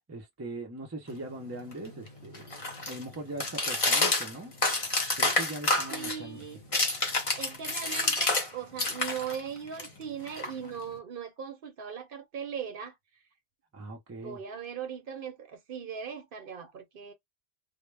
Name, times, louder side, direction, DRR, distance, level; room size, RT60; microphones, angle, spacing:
voice 1, 0.1-2.5 2.8-4.5 5.2-6.4 13.7-14.4, right 2 dB, 20° right, 0.4 m, -41 dB
sound 1, 1.1-8.5 8.7-11.0, left 2 dB, 35° left, 0.7 m, -30 dB
voice 2, 5.9-6.6 7.4-13.0 14.2-17.1, right 7 dB, 60° right, 0.8 m, -39 dB
2.1 x 2.0 x 3.2 m
omnidirectional pair, 1.1 m